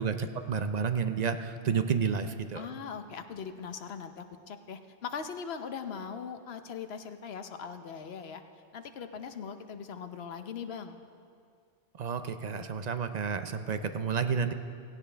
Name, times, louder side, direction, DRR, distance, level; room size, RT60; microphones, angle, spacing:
voice 1, 0.0-2.6 12.0-14.5, right 6 dB, 50° right, 9 dB, 0.6 m, -30 dB
voice 2, 2.6-8.4 8.7-11.0, left 6 dB, 70° left, 8 dB, 1.0 m, -40 dB
17.0 x 16.5 x 3.4 m, 2.3 s
omnidirectional pair, 1.1 m